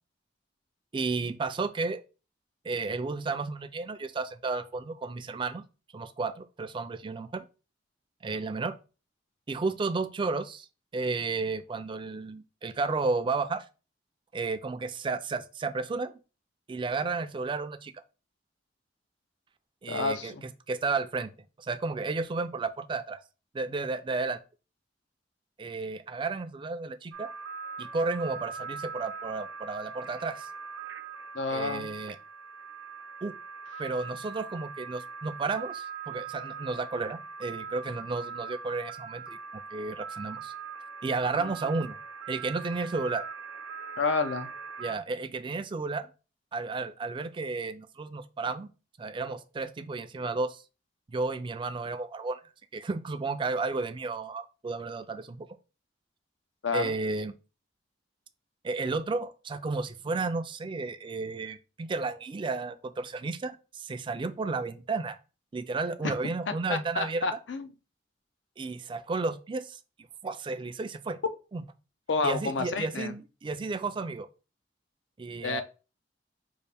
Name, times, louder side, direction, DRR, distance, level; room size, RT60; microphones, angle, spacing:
voice 1, 0.9-2.0 2.6-5.6 5.9-7.5 8.2-8.8 9.5-10.7 10.9-13.6 14.3-16.1 16.7-18.0 19.8-20.3 20.7-21.3 21.6-23.2 23.5-24.4 25.6-27.3 27.8-30.5 31.5-32.2 33.2-33.4 33.8-39.4 39.7-40.5 41.0-42.0 42.3-43.2 44.8-46.1 46.5-48.7 49.0-50.6 51.1-52.4 52.7-55.5 56.7-57.3 58.6-65.2 65.5-67.2 68.6-69.8 70.2-71.2 71.5-71.6 72.2-74.3 75.2-75.6, right 3 dB, 25° right, 0.3 m, -32 dB
voice 2, 19.9-20.4 31.3-31.9 41.3-41.5 44.0-44.5 56.6-56.9 66.0-66.1 66.7-67.7 72.1-73.1 75.4-75.6, left 4 dB, 80° left, 0.6 m, -30 dB
sound 1, 27.1-45.0, right 5 dB, 85° right, 0.7 m, -41 dB
5.3 x 2.5 x 3.4 m
head